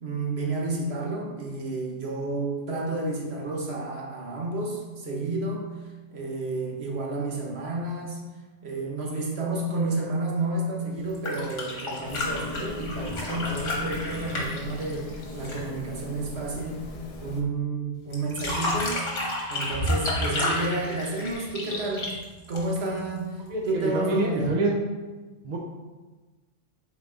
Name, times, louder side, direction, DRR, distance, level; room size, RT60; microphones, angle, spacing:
voice 1, 0.0-5.7 6.1-8.3 8.6-16.9 17.2-19.1 19.5-22.1 22.5-24.6, right 2 dB, 55° right, -1 dB, 1.2 m, -30 dB
sound 1, 11.0-15.7 18.1-23.0 24.4-24.5, left 1 dB, 70° left, 1.7 m, -31 dB
sound 2, 12.1-17.4, left 3 dB, 45° left, 0.5 m, -39 dB
voice 2, 23.5-24.8 25.4-25.6, right 2 dB, 40° right, -1 dB, 0.8 m, -26 dB
5.6 x 4.4 x 3.9 m, 1.2 s
omnidirectional pair, 1.3 m